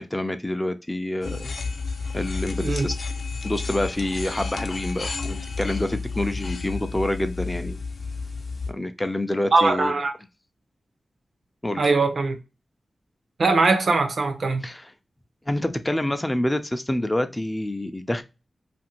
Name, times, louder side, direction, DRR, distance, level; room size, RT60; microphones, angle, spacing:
voice 1, 0.0-1.5 2.1-3.1 3.4-7.8 8.7-9.9 11.6-11.8 14.6-14.9 15.5-18.2, left 1 dB, 20° left, 0.4 m, -27 dB
sound 1, 1.2-8.7, left 4 dB, 70° left, 0.6 m, -31 dB
voice 2, 9.5-10.1 11.8-12.4 13.4-14.6, right 3 dB, 70° right, 0.7 m, -21 dB
2.6 x 2.5 x 2.9 m
cardioid pair, 50°, 0 cm